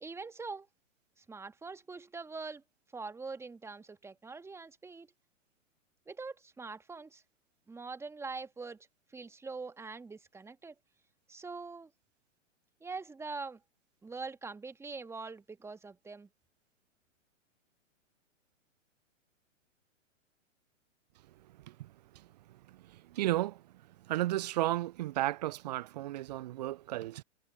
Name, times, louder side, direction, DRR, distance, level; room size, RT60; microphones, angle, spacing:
voice 1, 0.0-0.7 1.2-2.6 2.9-5.1 6.1-7.2 7.7-8.9 9.1-10.7 11.3-11.9 12.8-13.6 14.0-16.3, right 4 dB, 5° right, 1.6 m, -43 dB
voice 2, 22.9-23.6 24.1-27.2, right 15 dB, 35° right, 0.4 m, -33 dB
figure-of-eight pair, 110°, 38 cm